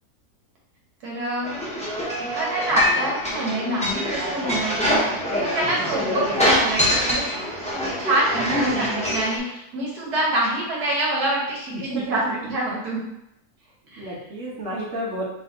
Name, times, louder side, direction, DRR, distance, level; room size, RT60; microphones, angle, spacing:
voice 1, 1.0-1.6 2.3-12.2 12.5-13.0 13.9-14.1, right 1 dB, 75° right, -4 dB, 1.6 m, -26 dB
sound 1, 1.4-9.4, equal, 10° left, 0.5 m, -24 dB
voice 2, 11.7-12.5 14.0-15.2, right 2 dB, 55° right, -5 dB, 1.4 m, -31 dB
3.9 x 2.8 x 3.8 m, 0.84 s
omnidirectional pair, 1.7 m